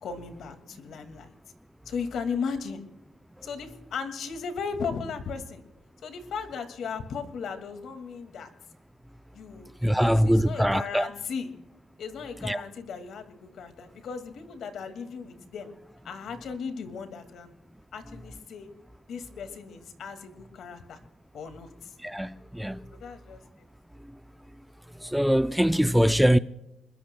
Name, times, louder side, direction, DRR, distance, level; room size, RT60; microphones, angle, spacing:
voice 1, 0.0-1.3 1.9-2.8 3.4-5.6 6.0-8.5 9.3-11.5 12.0-15.7 16.0-17.5 17.9-18.7 19.1-21.0 21.3-21.9 22.9-23.4, left 5 dB, 70° left, 2.0 m, -36 dB
voice 2, 9.8-11.1 12.4-12.6 22.0-22.8 25.1-26.4, equal, ahead, 0.4 m, -22 dB
28.0 x 21.0 x 2.2 m
cardioid pair, 90°, 0 cm